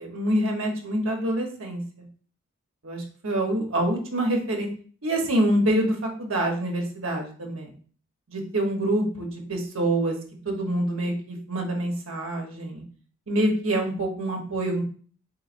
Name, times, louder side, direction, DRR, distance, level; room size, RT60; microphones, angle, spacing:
voice 1, 0.0-1.8 2.8-4.7 5.0-7.7 8.3-10.2 10.4-12.8 13.3-14.8, right 1 dB, 80° right, 1 dB, 1.0 m, -26 dB
4.4 x 3.1 x 2.5 m, 0.43 s
head